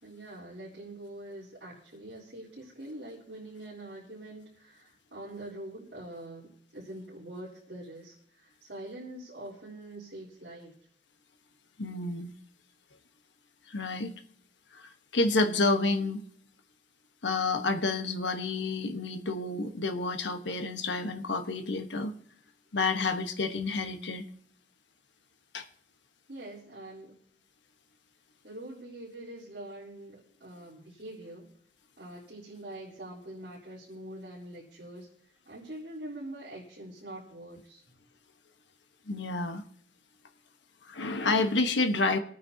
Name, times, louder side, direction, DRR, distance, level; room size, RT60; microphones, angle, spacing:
voice 1, 0.0-10.7 26.3-27.1 28.4-31.5 32.0-35.1 35.5-37.8, right 1 dB, 65° right, -10 dB, 3.9 m, -44 dB
voice 2, 11.8-12.3 13.7-14.1 14.7-16.2 17.2-22.1 22.7-24.2 25.5-25.7 39.1-39.6 40.9-42.2, left 3 dB, 85° left, 7 dB, 1.2 m, -29 dB
27.5 x 9.4 x 2.8 m, 0.65 s
head